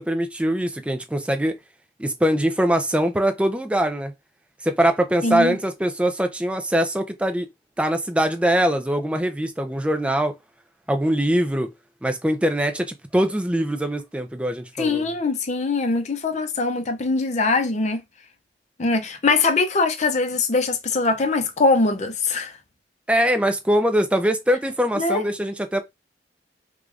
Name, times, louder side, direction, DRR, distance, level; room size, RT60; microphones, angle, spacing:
voice 1, 0.0-1.6 2.0-4.1 4.6-7.5 7.8-10.3 10.9-11.7 12.0-15.1 23.1-25.8, equal, 5° right, 0.4 m, -22 dB
voice 2, 5.2-5.6 14.8-18.0 18.8-22.5 25.0-25.2, left 3 dB, 40° left, 0.6 m, -22 dB
4.7 x 2.3 x 2.5 m
head